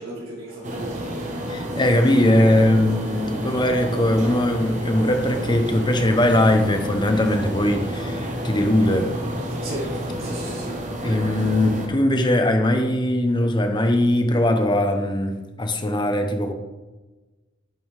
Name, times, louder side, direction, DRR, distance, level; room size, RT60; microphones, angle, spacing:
voice 1, 0.0-1.6 9.6-9.9 10.2-10.7, right 1 dB, 70° right, 3.1 m, -36 dB
sound 1, 0.6-11.9, equal, 35° right, 1.4 m, -30 dB
voice 2, 1.5-9.2 11.0-16.5, left 1 dB, 20° left, 0.9 m, -20 dB
11.0 x 5.5 x 4.8 m
head